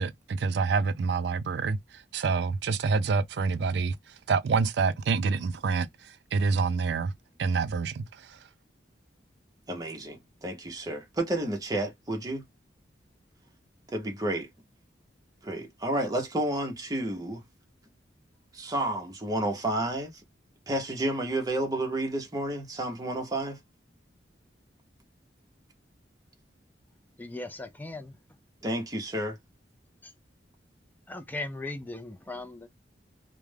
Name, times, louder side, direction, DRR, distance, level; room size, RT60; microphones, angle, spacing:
voice 1, 0.0-4.0 4.3-7.1 7.4-8.4, right 4 dB, 70° right, 0.4 m, -27 dB
voice 2, 9.7-12.4 13.9-14.5 15.4-17.4 18.5-20.2 20.7-23.6 28.6-29.4, right 1 dB, 20° right, 0.7 m, -31 dB
voice 3, 27.2-28.2 30.0-30.1 31.1-32.7, left 2 dB, 10° left, 0.3 m, -38 dB
2.3 x 2.1 x 3.2 m
head